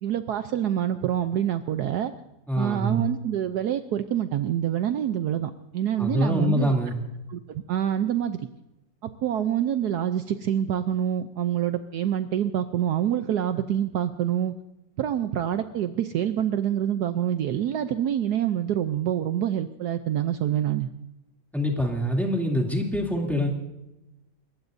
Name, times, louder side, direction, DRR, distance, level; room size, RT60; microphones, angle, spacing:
voice 1, 0.0-2.1 2.6-6.7 7.3-8.4 9.0-14.5 15.0-20.9, right 10 dB, 70° right, 9 dB, 1.1 m, -26 dB
voice 2, 2.5-3.1 6.0-7.0 21.5-23.5, equal, ahead, -1 dB, 2.6 m, -25 dB
29.5 x 15.0 x 2.6 m, 0.95 s
omnidirectional pair, 1.9 m